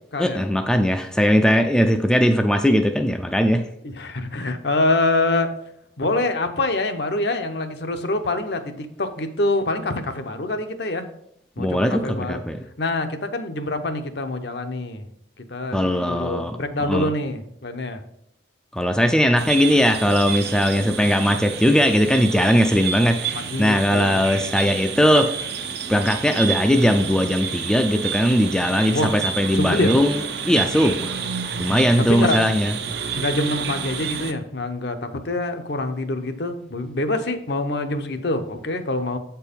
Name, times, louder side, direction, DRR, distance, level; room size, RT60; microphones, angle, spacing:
voice 1, 0.2-3.7 11.6-12.6 15.7-17.1 18.7-25.3 25.9-31.1 31.6-32.8, equal, 5° left, 5 dB, 0.4 m, -19 dB
voice 2, 3.8-5.5 6.0-11.1 11.6-12.4 12.8-15.0 15.5-18.0 23.5-24.2 28.9-29.1 29.5-29.9 32.1-32.4 33.1-39.2, left 2 dB, 65° left, 7 dB, 0.8 m, -25 dB
sound 1, 19.4-34.3, right 7 dB, 60° right, 0.6 m, -29 dB
7.7 x 4.6 x 5.2 m, 0.71 s
head